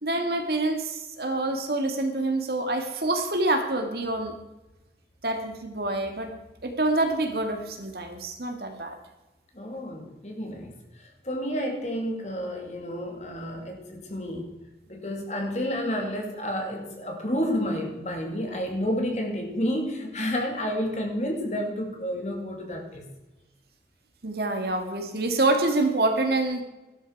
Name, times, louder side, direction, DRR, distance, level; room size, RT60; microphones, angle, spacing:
voice 1, 0.0-4.3 5.2-6.3 6.6-9.0 24.2-26.6, right 2 dB, 60° right, 5 dB, 2.0 m, -26 dB
voice 2, 9.5-10.7 11.0-14.6 14.9-23.0, equal, 40° left, 2 dB, 2.5 m, -30 dB
13.5 x 12.5 x 4.7 m, 1.0 s
head